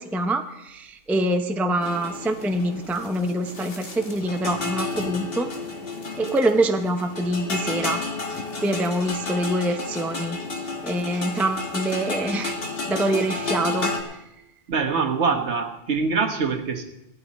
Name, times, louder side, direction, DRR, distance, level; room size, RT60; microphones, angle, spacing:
voice 1, 0.0-5.5 6.1-8.0 8.6-10.4 10.8-12.5 12.9-13.9, right 1 dB, ahead, 6 dB, 0.5 m, -25 dB
sound 1, 1.8-14.0, left 3 dB, 55° left, 1.5 m, -31 dB
voice 2, 14.7-16.8, right 5 dB, 70° right, 4 dB, 1.4 m, -24 dB
17.0 x 12.0 x 4.1 m, 0.87 s
omnidirectional pair, 1.2 m